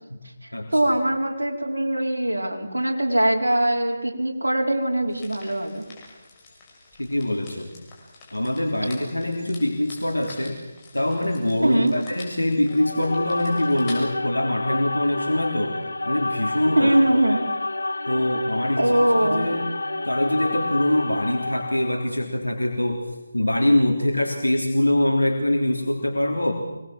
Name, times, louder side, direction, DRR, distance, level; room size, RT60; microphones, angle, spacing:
voice 1, 0.4-5.8 11.6-11.9 16.7-17.4 18.8-19.5, right 1 dB, 80° right, 0 dB, 4.9 m, -22 dB
sound 1, 5.1-14.0, left 4 dB, 20° left, 6.8 m, -47 dB
voice 2, 7.0-7.7 8.3-10.6 10.9-15.8 16.1-17.4 18.1-19.7 20.0-23.0 23.3-26.5, left 1 dB, 90° left, 2 dB, 3.5 m, -24 dB
sound 2, 12.7-22.1, left 2 dB, 70° left, 0.9 m, -29 dB
26.0 x 21.0 x 7.7 m, 1.1 s
figure-of-eight pair, 155°, 0 cm